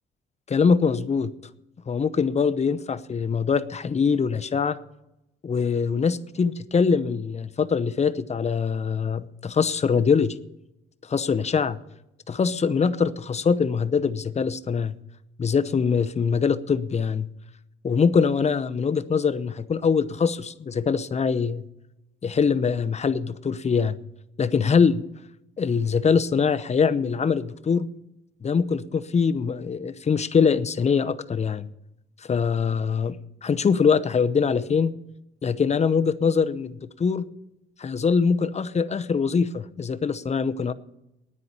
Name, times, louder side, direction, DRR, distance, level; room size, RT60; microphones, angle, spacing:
voice 1, 0.5-1.3 1.9-4.8 5.4-10.3 11.0-11.8 12.3-15.0 15.4-17.3 17.8-21.6 22.2-24.0 24.4-25.0 25.6-27.9 28.4-31.7 32.2-33.2 33.4-34.9 35.4-37.3 37.8-40.7, left 5 dB, 35° left, 11 dB, 0.8 m, -23 dB
9.7 x 9.5 x 8.7 m, 0.87 s
cardioid pair, 90°, 20 cm